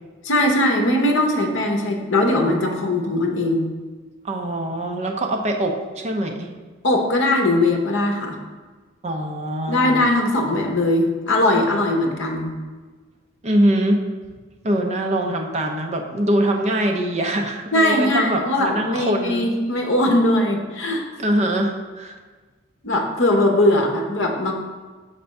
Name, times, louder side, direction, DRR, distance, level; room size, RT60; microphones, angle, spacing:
voice 1, 0.2-3.7 6.8-8.4 9.7-12.5 17.7-21.0 22.8-24.5, left 1 dB, 55° left, 2 dB, 0.8 m, -20 dB
voice 2, 4.2-6.5 9.0-10.0 13.4-14.0 14.6-19.5 21.2-22.2, right 1 dB, 30° right, 3 dB, 0.5 m, -23 dB
6.6 x 3.4 x 5.2 m, 1.4 s
head